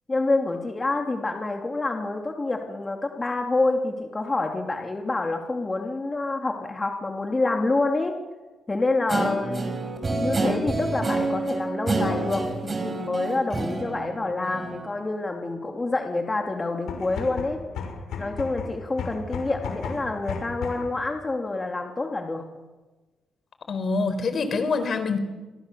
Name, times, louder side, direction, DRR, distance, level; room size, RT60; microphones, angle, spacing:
voice 1, 0.1-8.2 8.7-9.7 10.1-17.6 18.2-22.4, left 2 dB, 25° left, 3 dB, 3.0 m, -27 dB
Guitar, 9.1-14.9, right 2 dB, 30° right, 6.7 m, -28 dB
sound 1, 16.7-21.0, left 6 dB, 80° left, 6.6 m, -34 dB
voice 2, 23.7-25.2, left 4 dB, 50° left, 10 dB, 4.2 m, -25 dB
27.5 x 22.0 x 7.1 m, 1.2 s
cardioid pair, 90°, 0 cm